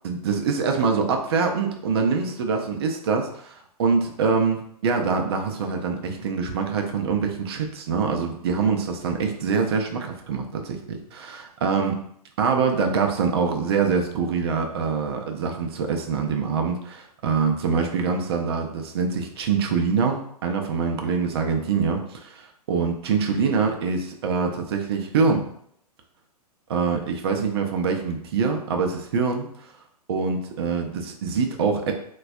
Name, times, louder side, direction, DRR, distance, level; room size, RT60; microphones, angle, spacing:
voice 1, 0.0-12.0 12.4-25.5 26.7-29.7 30.1-31.9, right 5 dB, 40° right, 3 dB, 0.5 m, -24 dB
3.9 x 2.3 x 2.3 m, 0.68 s
figure-of-eight pair, 115°, 20 cm